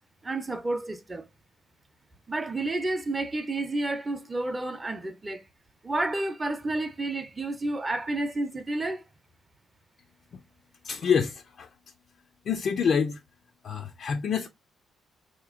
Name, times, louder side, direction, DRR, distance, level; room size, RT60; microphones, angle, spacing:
voice 1, 0.2-1.3 2.3-5.4 5.8-9.0, right 2 dB, 20° right, 0.7 m, -30 dB
voice 2, 10.8-11.7 12.5-13.2 13.6-14.5, left 6 dB, 55° left, 0.4 m, -27 dB
4.1 x 2.9 x 2.4 m
cardioid pair, 90°, 0 cm